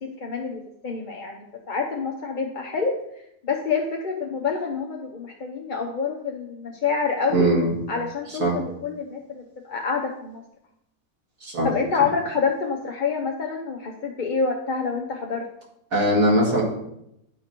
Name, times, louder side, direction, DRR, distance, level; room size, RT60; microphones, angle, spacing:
voice 1, 0.0-7.5 7.9-10.4 11.6-15.5, left 5 dB, 40° left, 1 dB, 0.9 m, -27 dB
voice 2, 7.3-7.7 8.4-8.6 11.4-11.7 15.9-16.6, right 1 dB, 70° right, -5 dB, 2.9 m, -20 dB
11.0 x 6.7 x 4.5 m, 0.80 s
omnidirectional pair, 1.5 m